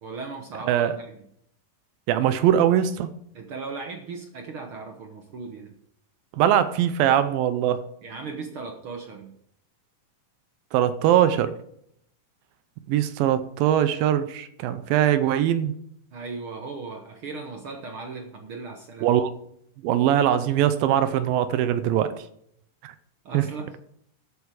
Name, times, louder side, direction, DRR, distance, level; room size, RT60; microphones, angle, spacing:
voice 1, 0.0-1.2 3.3-5.7 8.0-9.3 16.1-19.1 23.2-23.7, right 4 dB, 70° right, 3 dB, 1.2 m, -37 dB
voice 2, 2.1-3.1 6.4-7.8 10.7-11.5 12.9-15.7 19.0-19.3 19.8-22.1 22.8-22.9 23.3-23.4, right 10 dB, 85° right, 12 dB, 2.5 m, -21 dB
13.5 x 8.3 x 4.9 m, 0.71 s
omnidirectional pair, 4.0 m